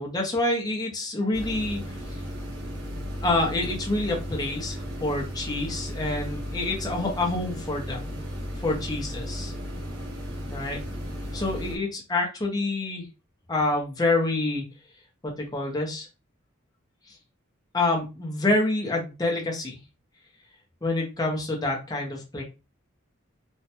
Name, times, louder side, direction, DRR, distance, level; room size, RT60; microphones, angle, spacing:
voice 1, 0.0-2.0 3.2-8.1 8.6-9.5 10.5-10.8 11.3-13.0 13.5-14.6 15.2-16.1 17.7-19.8 20.8-22.4, left 2 dB, 20° left, -1 dB, 0.8 m, -27 dB
sound 1, 1.3-11.8, equal, 55° right, 0.9 m, -35 dB
3.1 x 2.2 x 2.9 m, 0.29 s
head